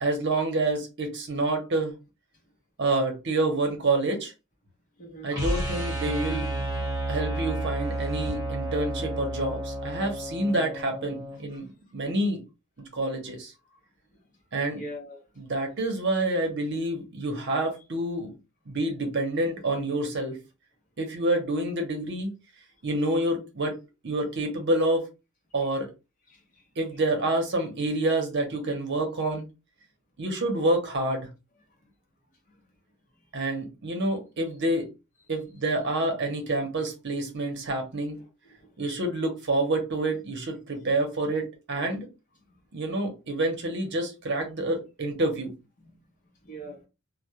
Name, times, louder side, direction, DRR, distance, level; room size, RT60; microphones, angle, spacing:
voice 1, 0.0-1.9 2.8-4.3 5.2-6.5 7.1-12.4 12.8-13.5 14.5-14.8 15.4-18.3 18.7-20.4 21.0-22.3 22.8-25.0 25.5-25.9 26.8-29.5 30.2-31.3 33.3-34.9 35.3-38.2 38.8-42.1 42.7-45.5, right 2 dB, 50° right, 0.7 m, -28 dB
voice 2, 5.0-5.3 13.7-13.8 14.7-15.2 26.3-26.6 38.6-38.7 45.8-45.9 46.4-46.9, right 1 dB, 35° left, 0.8 m, -42 dB
sound 1, 5.3-11.4, right 1 dB, 20° right, 1.1 m, -31 dB
2.2 x 2.1 x 2.8 m
head